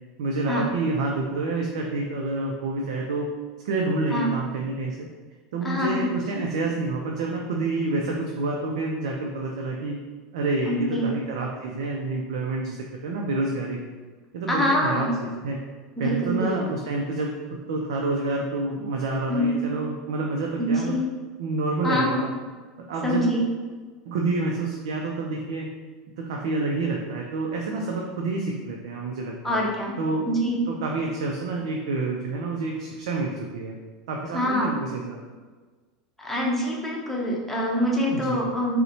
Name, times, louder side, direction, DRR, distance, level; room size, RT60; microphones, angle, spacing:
voice 1, 0.2-3.3 3.6-5.1 5.5-10.0 10.3-12.8 13.0-13.8 14.3-15.6 16.0-21.0 21.4-22.3 22.9-23.4 24.1-25.7 26.2-29.6 30.0-33.8 34.1-35.2 38.1-38.5, right 3 dB, 80° right, 0 dB, 0.4 m, -28 dB
voice 2, 5.6-6.1 10.7-11.1 14.5-15.1 16.0-16.5 19.3-19.6 20.6-21.1 21.8-22.2 23.0-23.5 29.4-29.9 30.3-30.6 34.3-34.7 36.2-38.8, equal, 5° left, -3 dB, 0.7 m, -25 dB
4.0 x 2.1 x 2.7 m, 1.4 s
supercardioid pair, 110°, 3 cm